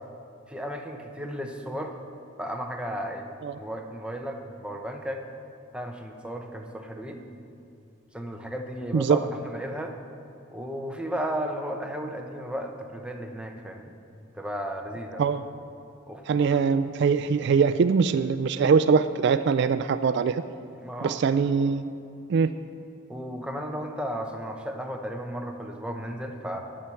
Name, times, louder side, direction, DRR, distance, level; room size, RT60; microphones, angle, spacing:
voice 1, 0.5-2.0 2.4-5.2 5.7-7.3 8.1-9.9 10.5-13.9 14.3-15.3 16.1-16.6 20.7-21.2 23.1-26.6, equal, 5° right, 3 dB, 0.8 m, -34 dB
voice 2, 16.3-20.4 21.0-21.9 22.3-22.5, right 5 dB, 60° right, 12 dB, 0.3 m, -22 dB
10.0 x 7.6 x 7.0 m, 2.7 s
head